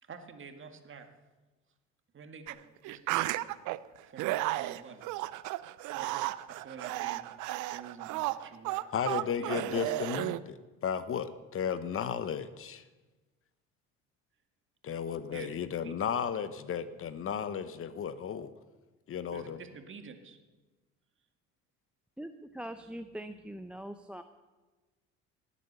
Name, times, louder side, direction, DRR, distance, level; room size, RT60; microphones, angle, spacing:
voice 1, 0.0-1.1 2.1-2.6 2.8-3.6 4.1-5.2 5.9-6.1 6.5-8.9 9.1-9.9 15.3-15.6 15.8-16.0 19.3-20.4, right 6 dB, 40° right, 6 dB, 1.9 m, -48 dB
sound 1, 2.5-2.6 2.8-3.8 4.2-10.4, right 17 dB, 70° right, 0.6 m, -33 dB
voice 2, 8.9-12.8 14.8-18.5 19.1-19.6, left 7 dB, 45° left, 13 dB, 0.9 m, -34 dB
voice 3, 22.2-24.2, right 1 dB, 5° right, 9 dB, 0.7 m, -42 dB
18.5 x 8.4 x 6.8 m, 1.2 s
supercardioid pair, 85°, 31 cm